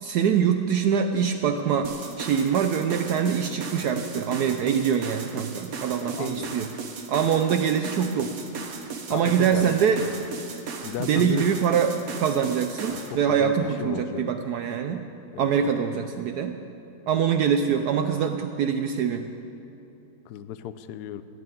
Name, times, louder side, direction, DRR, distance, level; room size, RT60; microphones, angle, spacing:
voice 1, 0.0-1.9 2.2-6.7 7.1-8.3 9.1-10.0 11.0-15.1 15.4-16.6 17.1-19.3, right 7 dB, 80° right, 7 dB, 0.9 m, -24 dB
sound 1, 1.8-13.1, right 5 dB, 50° right, 1.2 m, -36 dB
voice 2, 6.0-6.6 9.1-10.2 10.8-11.5 12.9-14.2 15.3-15.4 20.3-21.2, left 10 dB, 85° left, 10 dB, 0.8 m, -35 dB
14.0 x 6.8 x 9.2 m, 2.8 s
omnidirectional pair, 2.3 m